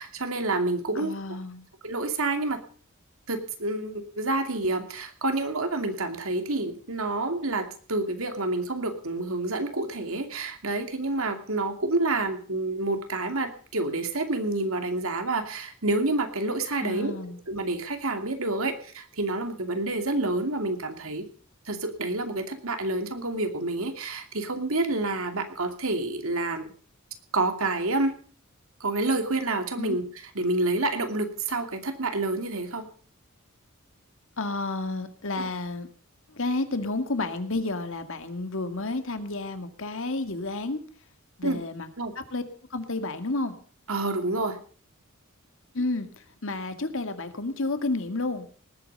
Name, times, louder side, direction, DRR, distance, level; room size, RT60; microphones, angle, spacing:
voice 1, 0.0-1.1 1.8-2.6 3.3-17.2 17.5-21.2 21.7-26.7 27.3-28.1 28.8-30.0 30.3-32.9 41.4-41.6 42.0-42.1 43.9-44.6, right 2 dB, 70° right, 7 dB, 2.6 m, -28 dB
voice 2, 1.0-1.7 16.8-17.4 29.8-30.0 34.4-35.9 36.3-40.8 41.4-41.9 42.2-42.4 42.7-43.5 45.7-46.1 46.4-48.5, left 2 dB, 65° left, 9 dB, 2.0 m, -31 dB
19.0 x 8.9 x 6.7 m, 0.43 s
head